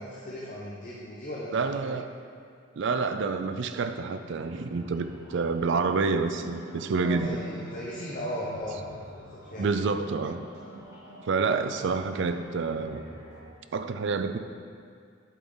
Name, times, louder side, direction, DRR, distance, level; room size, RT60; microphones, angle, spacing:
voice 1, 0.0-1.9 7.0-8.8 9.5-9.7, equal, 40° left, -6 dB, 0.9 m, -37 dB
voice 2, 1.5-2.1 2.8-7.4 9.6-10.4 11.3-13.0 13.7-14.4, right 4 dB, 60° right, 9 dB, 0.4 m, -28 dB
sound 1, 4.0-13.4, equal, 15° right, 2.0 m, -47 dB
8.4 x 6.0 x 3.9 m, 2.2 s
head